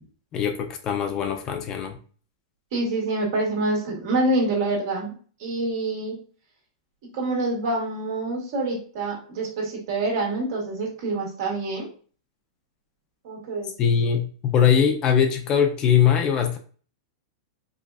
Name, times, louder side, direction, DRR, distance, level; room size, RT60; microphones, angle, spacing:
voice 1, 0.3-2.0 13.8-16.6, left 8 dB, 30° left, 6 dB, 0.5 m, -21 dB
voice 2, 2.7-5.1 5.4-6.2 7.1-11.9 13.2-13.7, right 2 dB, 55° right, -1 dB, 1.7 m, -26 dB
4.8 x 2.2 x 2.3 m, 0.41 s
hypercardioid pair, 135°, 2 cm